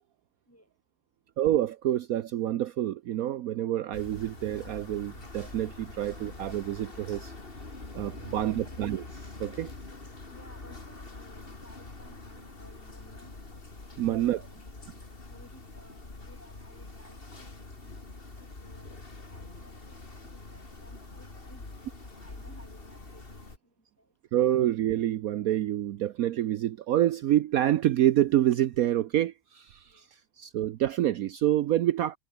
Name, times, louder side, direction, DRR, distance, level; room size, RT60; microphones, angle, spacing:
voice 1, 1.4-7.3 7.9-9.7 14.0-14.4 24.3-32.2, right 12 dB, 65° right, 1.1 m, -27 dB
voice 2, 3.6-4.0 8.2-8.7 10.3-13.3 13.9-14.6 15.3-18.0 18.4-18.9 19.3-24.1 29.9-30.1, equal, 10° left, 6.2 m, -58 dB
sound 1, 3.9-23.6, left 3 dB, 35° left, 3.0 m, -45 dB
omnidirectional pair, 1.7 m